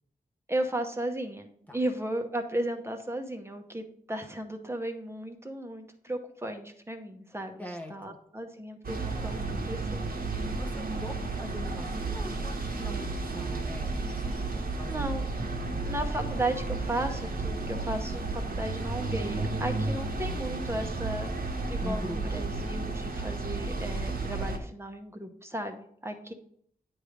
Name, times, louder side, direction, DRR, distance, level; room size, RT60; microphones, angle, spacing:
voice 1, 0.5-7.6 7.9-10.0 14.8-15.2 15.8-21.3 21.7-26.3, right 1 dB, 15° right, 4 dB, 0.9 m, -35 dB
voice 2, 7.6-8.2 10.5-15.1 21.8-22.5, equal, 10° left, 2 dB, 0.7 m, -42 dB
sound 1, 8.8-24.6, right 3 dB, 70° right, 1.3 m, -32 dB
9.7 x 3.3 x 5.1 m, 0.64 s
wide cardioid pair, 115°, 16 cm